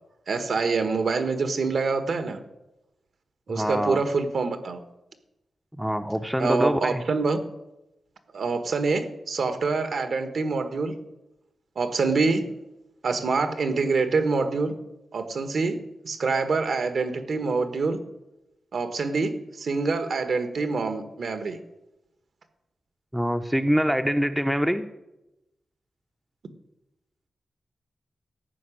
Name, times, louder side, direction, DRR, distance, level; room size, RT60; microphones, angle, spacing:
voice 1, 0.3-2.4 3.5-4.8 6.4-7.4 8.3-10.9 11.7-12.5 13.0-14.7 15.1-15.8 16.0-18.0 18.7-19.3 19.6-21.6, right 4 dB, 65° right, 9 dB, 1.4 m, -25 dB
voice 2, 3.5-4.0 5.8-7.0 23.1-24.9, equal, 5° right, 8 dB, 0.6 m, -24 dB
14.0 x 6.0 x 10.0 m, 0.94 s
wide cardioid pair, 145°, 0 cm